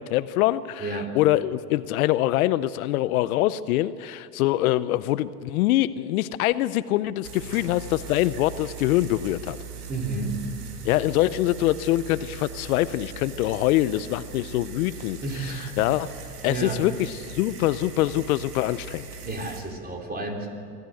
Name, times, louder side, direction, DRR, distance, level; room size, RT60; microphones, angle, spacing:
voice 1, 0.0-9.6 10.8-16.1 16.4-19.1, left 15 dB, 65° left, 16 dB, 0.7 m, -24 dB
sound 1, 7.2-19.6, right 6 dB, 80° right, 3.0 m, -40 dB
voice 2, 9.9-10.4 15.2-15.7 16.5-16.8 19.2-20.5, right 3 dB, 20° right, 2 dB, 4.0 m, -31 dB
25.0 x 13.5 x 7.8 m, 2.3 s
hypercardioid pair, 95°, 46 cm